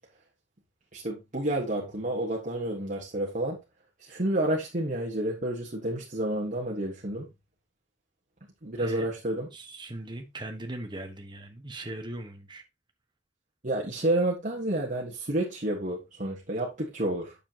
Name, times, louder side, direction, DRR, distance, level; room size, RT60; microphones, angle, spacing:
voice 1, 0.9-3.6 4.0-7.3 8.6-9.5 13.6-17.3, right 1 dB, 45° right, 1.6 m, -30 dB
voice 2, 9.5-12.6, right 1 dB, 25° right, 1.3 m, -39 dB
8.7 x 6.9 x 2.9 m
head